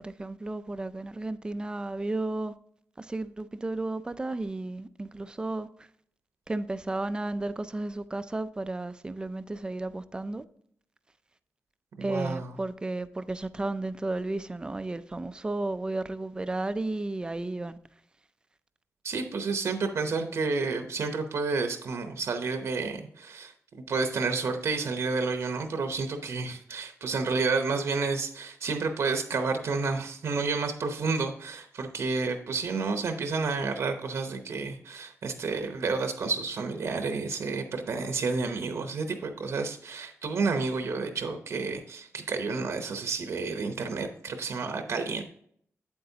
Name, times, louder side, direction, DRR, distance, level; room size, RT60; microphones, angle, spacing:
voice 1, 0.0-2.5 3.0-5.7 6.5-10.4 12.0-17.8, right 2 dB, 15° right, 0.4 m, -33 dB
voice 2, 12.0-12.6 19.0-45.2, right 4 dB, 65° right, 0.8 m, -30 dB
8.6 x 8.0 x 2.8 m
wide cardioid pair, 165°, 5 cm